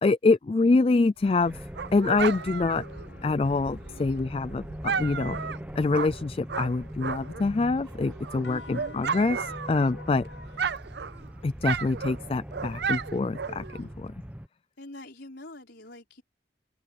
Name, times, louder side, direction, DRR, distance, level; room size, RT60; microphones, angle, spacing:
voice 1, 0.0-2.8 3.2-5.4 5.8-10.3 11.4-14.1, left 3 dB, 30° left, 0.3 m, -25 dB
Dog, 1.2-7.5 7.9-10.2 10.4-13.9, right 6 dB, 65° right, 0.6 m, -34 dB
sound 1, 1.4-14.5, equal, 10° right, 1.1 m, -42 dB
sound 2, 2.3-10.6, left 3 dB, 90° left, 7.7 m, -51 dB
voice 2, 8.4-9.0 14.8-16.2, left 1 dB, 70° left, 4.7 m, -44 dB
open air
head